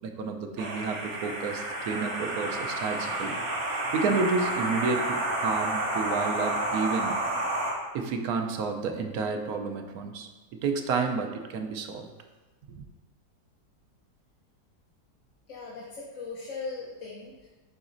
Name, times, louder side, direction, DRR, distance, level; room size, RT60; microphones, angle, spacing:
voice 1, 0.0-3.4 3.9-7.1 7.9-12.1 12.7-12.8, right 4 dB, 70° right, 4 dB, 1.1 m, -30 dB
sound 1, 0.6-7.7, right 2 dB, 50° right, 1.2 m, -30 dB
voice 2, 15.5-17.5, left 4 dB, 55° left, -5 dB, 1.0 m, -39 dB
10.5 x 4.0 x 2.6 m, 1.2 s
omnidirectional pair, 1.8 m